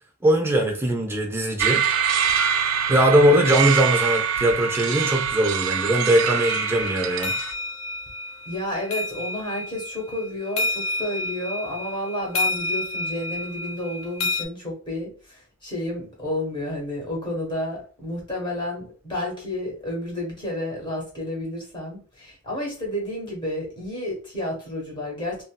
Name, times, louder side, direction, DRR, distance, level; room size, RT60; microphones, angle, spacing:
voice 1, 0.2-1.9 2.9-7.4, right 1 dB, 10° right, 0.5 m, -20 dB
sound 1, 1.6-7.5, right 7 dB, 65° right, 0.3 m, -24 dB
sound 2, 6.4-14.4, left 2 dB, 65° left, 0.4 m, -30 dB
voice 2, 8.5-25.4, left 1 dB, 20° left, 1.2 m, -31 dB
2.9 x 2.7 x 2.2 m
head